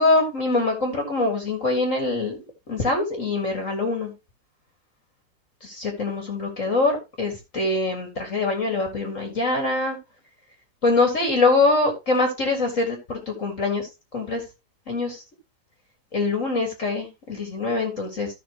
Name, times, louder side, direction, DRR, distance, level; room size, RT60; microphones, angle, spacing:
voice 1, 0.0-2.4 2.7-4.1 5.6-10.0 10.8-13.9 14.1-14.4 14.9-15.2 16.1-18.3, left 3 dB, 45° left, 3 dB, 2.2 m, -24 dB
14.0 x 5.9 x 2.9 m, 0.25 s
omnidirectional pair, 2.0 m